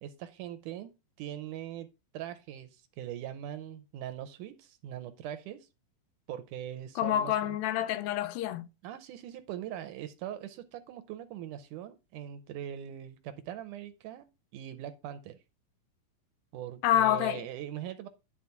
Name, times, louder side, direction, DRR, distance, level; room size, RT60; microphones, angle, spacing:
voice 1, 0.0-1.9 2.1-5.7 6.3-7.6 8.8-14.3 14.5-15.4 16.5-18.1, right 11 dB, 80° right, 2.0 m, -41 dB
voice 2, 7.0-8.7 16.8-17.4, left 11 dB, 85° left, 2.5 m, -27 dB
11.0 x 4.0 x 5.8 m
omnidirectional pair, 4.1 m